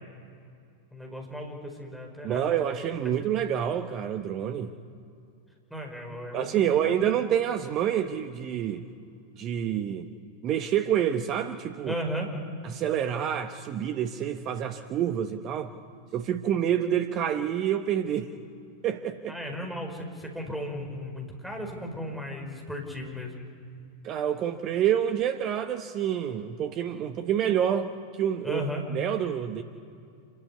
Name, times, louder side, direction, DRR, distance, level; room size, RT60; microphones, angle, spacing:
voice 1, 0.9-2.5 3.0-3.1 5.7-6.8 11.9-12.3 19.3-23.3 28.4-28.8, equal, ahead, 2 dB, 4.9 m, -35 dB
voice 2, 2.2-4.7 6.3-8.8 9.4-10.1 10.4-11.9 12.6-15.7 16.1-18.3 18.8-19.3 24.0-28.7 28.9-29.6, right 9 dB, 35° right, 8 dB, 1.1 m, -27 dB
27.5 x 14.0 x 9.7 m, 2.5 s
figure-of-eight pair, 90°, 0 cm